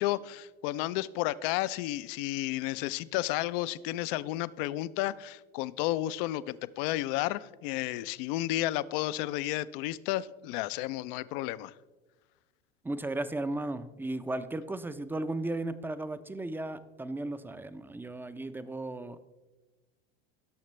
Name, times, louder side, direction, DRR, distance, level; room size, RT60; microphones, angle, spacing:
voice 1, 0.0-11.7, left 15 dB, 55° left, 17 dB, 0.5 m, -32 dB
voice 2, 12.8-19.2, right 2 dB, 5° right, 12 dB, 0.5 m, -35 dB
17.0 x 6.5 x 3.2 m, 1.2 s
hypercardioid pair, 85°, 31 cm